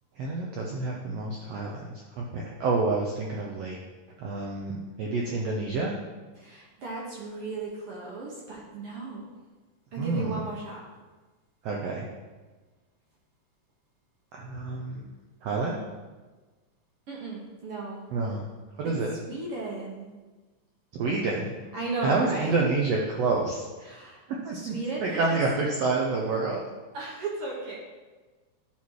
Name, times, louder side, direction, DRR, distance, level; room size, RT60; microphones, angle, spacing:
voice 1, 0.2-3.8 4.2-5.9 10.0-10.4 11.6-12.1 14.3-15.1 15.4-15.8 18.1-18.4 18.8-19.1 20.9-21.6 22.0-23.7 24.4-26.6, right 3 dB, 80° right, -1 dB, 1.4 m, -28 dB
voice 2, 6.4-9.3 9.9-10.8 17.1-18.1 18.8-18.9 19.2-20.1 21.7-22.6 23.8-24.2 24.5-25.4 26.9-27.8, right 3 dB, 60° right, -4 dB, 1.5 m, -35 dB
11.5 x 4.3 x 4.7 m, 1.3 s
omnidirectional pair, 3.9 m